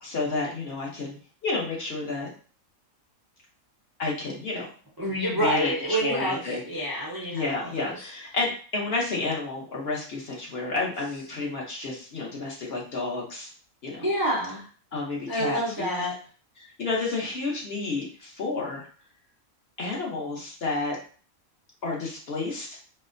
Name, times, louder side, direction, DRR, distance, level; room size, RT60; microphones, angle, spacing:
voice 1, 0.0-2.3 4.0-4.6 5.3-6.6 7.3-13.5 13.8-14.0 14.9-15.8 16.6-18.9 19.8-21.0 21.8-22.8, left 3 dB, 50° left, -3 dB, 0.9 m, -30 dB
voice 2, 5.0-8.0 14.0-14.7 15.3-16.1, equal, 25° right, -5 dB, 0.4 m, -28 dB
4.1 x 2.1 x 2.5 m, 0.40 s
omnidirectional pair, 1.5 m